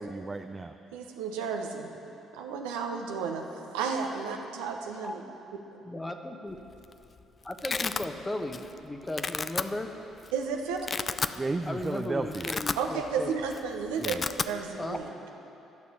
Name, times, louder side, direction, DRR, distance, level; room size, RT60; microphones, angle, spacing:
voice 1, 0.0-0.8 11.3-12.5 14.0-14.3, right 3 dB, 25° right, 6 dB, 0.5 m, -33 dB
voice 2, 0.9-1.9 2.3-5.2 10.3-10.8 12.8-14.2 14.5-15.1, right 6 dB, 80° right, 2 dB, 0.9 m, -32 dB
voice 3, 5.8-6.6 7.4-9.9 11.7-13.3 14.8-15.0, left 1 dB, 15° left, 5 dB, 1.1 m, -36 dB
Domestic sounds home sounds, 6.6-6.9 7.2-8.0 8.5-8.8 9.1-9.6 10.2-10.3 10.7-11.4 11.8-11.9 12.2-13.2 13.4-13.6 13.8-14.5, left 5 dB, 40° left, 0.4 m, -32 dB
12.0 x 6.8 x 8.2 m, 2.9 s
hypercardioid pair, 50°, 0 cm